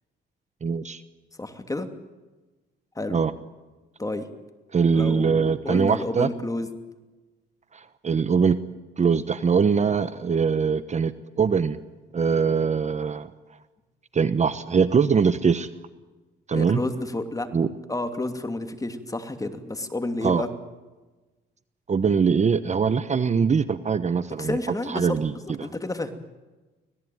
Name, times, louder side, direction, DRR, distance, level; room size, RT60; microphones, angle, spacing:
voice 1, 0.6-1.0 3.1-3.3 4.7-6.3 7.7-8.6 9.0-11.8 12.1-13.3 14.1-15.7 16.5-16.8 17.5-17.7 20.2-20.4 21.9-24.6 24.9-25.3, right 6 dB, 35° right, 13 dB, 1.0 m, -22 dB
voice 2, 1.3-1.9 2.9-3.2 4.0-4.3 4.9-6.7 16.5-17.5 17.9-20.5 24.4-26.1, left 2 dB, 15° left, 7 dB, 2.7 m, -30 dB
25.5 x 18.0 x 9.4 m, 1.2 s
cardioid pair, 90°, 20 cm